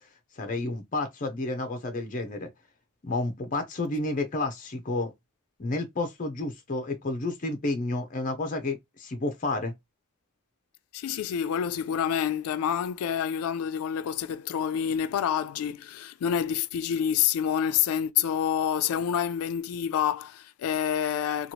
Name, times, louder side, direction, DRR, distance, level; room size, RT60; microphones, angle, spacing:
voice 1, 0.4-2.5 3.0-5.1 5.6-9.7, left 2 dB, 40° left, 0.6 m, -30 dB
voice 2, 10.9-21.5, left 8 dB, 90° left, 0.3 m, -28 dB
2.9 x 2.3 x 2.9 m
head